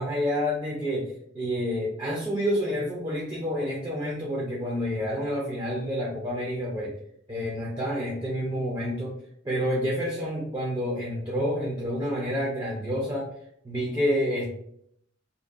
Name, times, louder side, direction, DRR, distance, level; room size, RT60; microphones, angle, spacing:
voice 1, 0.0-6.9 7.3-9.2 9.4-13.3 13.6-14.6, equal, 20° right, -4 dB, 0.4 m, -28 dB
2.6 x 2.2 x 2.3 m, 0.70 s
head